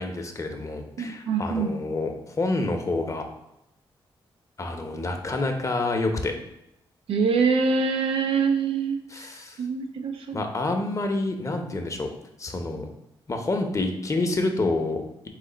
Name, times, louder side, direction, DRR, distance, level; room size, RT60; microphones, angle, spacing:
voice 1, 0.0-3.3 4.6-6.4 9.1-9.6 10.3-12.1 12.4-12.9 13.3-15.3, left 2 dB, 35° left, 4 dB, 0.7 m, -28 dB
voice 2, 1.0-1.7 7.1-9.3 9.6-10.5, right 5 dB, 85° right, 5 dB, 0.5 m, -25 dB
3.9 x 3.2 x 3.8 m, 0.84 s
cardioid pair, 75°, 9 cm